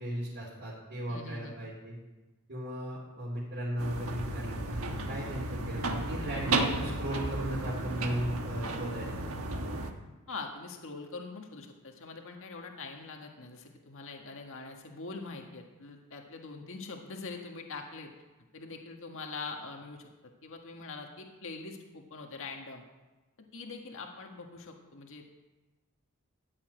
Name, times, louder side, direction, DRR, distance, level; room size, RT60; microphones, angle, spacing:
voice 1, 0.0-2.0 2.5-9.3, right 1 dB, 55° right, -6 dB, 3.5 m, -36 dB
voice 2, 1.1-1.6 10.3-18.1 18.5-20.1 20.4-22.8 23.5-25.2, left 4 dB, 60° left, 2 dB, 1.6 m, -43 dB
sound 1, 3.8-9.9, right 2 dB, 70° right, 1.5 m, -33 dB
13.5 x 7.4 x 8.8 m, 1.2 s
head